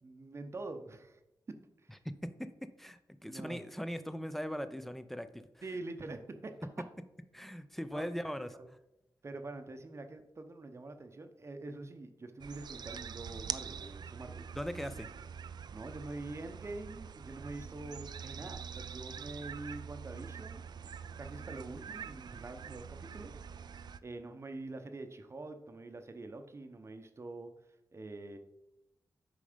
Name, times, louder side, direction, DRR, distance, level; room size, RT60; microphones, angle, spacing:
voice 1, 0.0-1.2 1.5-2.0 3.2-3.6 5.6-6.5 7.9-8.0 8.6-8.7 9.2-14.5 15.7-20.6 21.2-23.4 24.0-27.5 27.9-28.4, right 2 dB, 35° right, 7 dB, 0.7 m, -45 dB
voice 2, 2.2-5.4 7.3-8.5 14.5-15.1, equal, 5° left, 11 dB, 0.5 m, -40 dB
sound 1, 12.4-24.0, right 7 dB, 65° right, 0.4 m, -45 dB
8.7 x 5.3 x 5.0 m, 0.91 s
wide cardioid pair, 145°, 8 cm